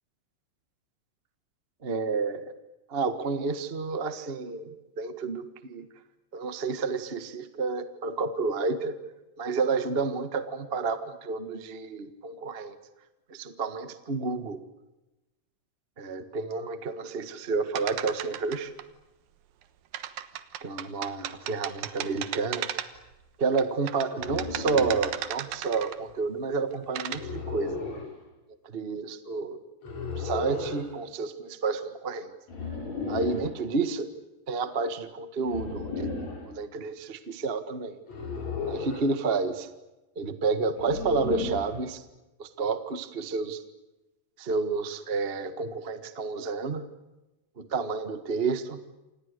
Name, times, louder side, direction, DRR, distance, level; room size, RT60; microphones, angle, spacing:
voice 1, 1.8-2.5 2.9-5.9 6.3-9.0 9.4-12.8 13.3-14.6 16.0-18.7 20.6-22.7 23.4-27.8 28.7-29.6 30.2-32.3 33.1-34.1 34.5-38.0 38.7-39.7 40.1-42.0 42.4-43.6 44.4-46.9 47.6-48.8, right 4 dB, 55° right, 10 dB, 0.6 m, -30 dB
sound 1, 17.8-18.8 19.9-23.1 23.6-26.1 26.7-27.2, right 11 dB, 90° right, 3.0 m, -35 dB
sound 2, 24.2-25.1 27.1-28.1 29.8-30.8 32.5-33.5 35.4-36.4 38.1-39.1 40.8-41.8, left 4 dB, 50° left, 7.2 m, -34 dB
29.0 x 27.5 x 6.7 m, 1.0 s
omnidirectional pair, 3.9 m